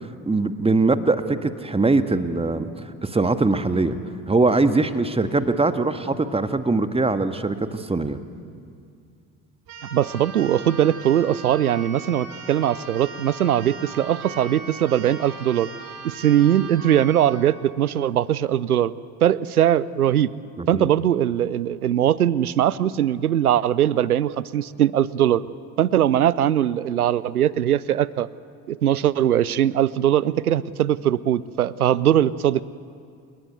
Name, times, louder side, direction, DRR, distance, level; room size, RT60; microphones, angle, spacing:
voice 1, 0.3-2.7 3.0-4.0 4.3-8.2 20.6-20.9, right 3 dB, 15° right, 10 dB, 1.6 m, -22 dB
Keyboard (musical), 9.7-17.4, right 4 dB, 50° right, 5.0 m, -39 dB
voice 2, 9.9-15.7 16.0-18.9 19.2-20.3 20.7-25.4 25.8-28.3 28.7-32.6, right 11 dB, 80° right, 21 dB, 0.6 m, -20 dB
29.5 x 19.5 x 9.6 m, 2.2 s
figure-of-eight pair, 55°, 44 cm